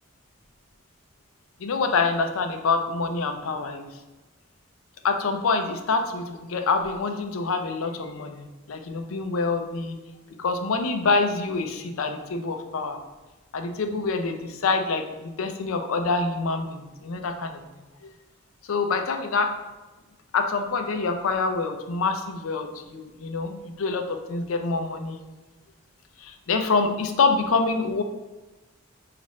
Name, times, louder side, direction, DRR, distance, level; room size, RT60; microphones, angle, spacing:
voice 1, 1.6-3.9 5.0-10.0 10.4-13.0 13.5-17.6 18.7-19.6 20.3-25.2 26.2-28.0, left 4 dB, 90° left, 6 dB, 0.5 m, -26 dB
5.3 x 2.5 x 3.0 m, 1.2 s
head